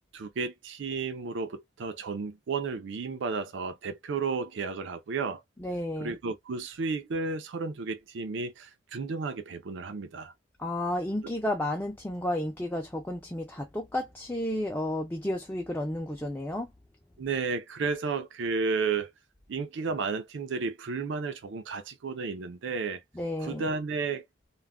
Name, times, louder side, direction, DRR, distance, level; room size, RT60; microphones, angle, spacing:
voice 1, 0.0-5.4 6.0-10.3 17.2-19.1 19.5-23.0 23.4-24.2, right 4 dB, 80° right, 0.4 m, -32 dB
voice 2, 5.6-6.2 10.6-16.7 23.2-23.6, left 1 dB, 10° left, 0.4 m, -32 dB
2.3 x 2.1 x 3.5 m
head